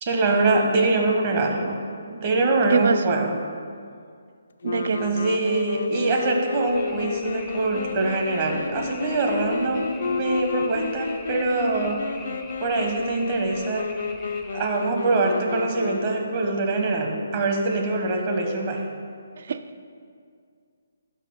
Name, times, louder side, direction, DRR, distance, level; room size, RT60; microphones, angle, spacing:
voice 1, 0.0-1.8 2.1-3.4 5.0-12.0 12.6-13.9 14.5-18.9, right 2 dB, 35° right, 2 dB, 1.0 m, -24 dB
voice 2, 2.7-3.1 4.6-5.0 19.5-19.6, right 5 dB, 60° right, 11 dB, 0.4 m, -23 dB
sound 1, 4.6-16.5, left 5 dB, 65° left, 0.4 m, -32 dB
sound 2, 6.6-14.7, left 2 dB, ahead, 0.5 m, -44 dB
5.7 x 5.4 x 5.5 m, 2.2 s
hypercardioid pair, 155°, 0 cm